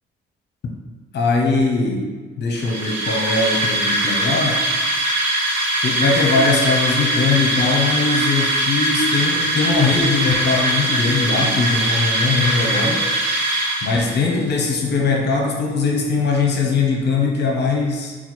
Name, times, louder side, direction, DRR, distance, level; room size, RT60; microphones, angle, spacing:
voice 1, 1.1-2.0 2.4-4.7 5.8-13.0 13.8-18.2, left 4 dB, 60° left, 0 dB, 0.8 m, -20 dB
sound 1, 2.5-14.4, right 1 dB, 75° right, 0.8 m, -21 dB
4.1 x 2.3 x 4.3 m, 1.4 s
cardioid pair, 90°, 20 cm